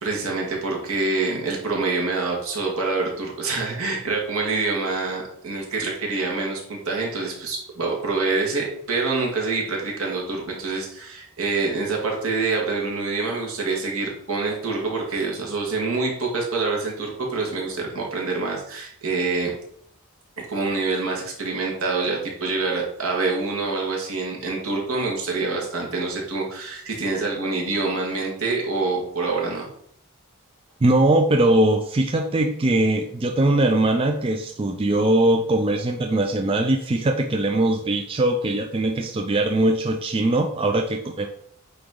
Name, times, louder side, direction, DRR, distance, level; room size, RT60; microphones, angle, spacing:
voice 1, 0.0-19.5 20.5-29.7, right 3 dB, 75° right, -1 dB, 1.8 m, -26 dB
voice 2, 30.8-41.3, right 1 dB, 25° right, 4 dB, 0.4 m, -21 dB
8.6 x 2.9 x 3.8 m, 0.68 s
head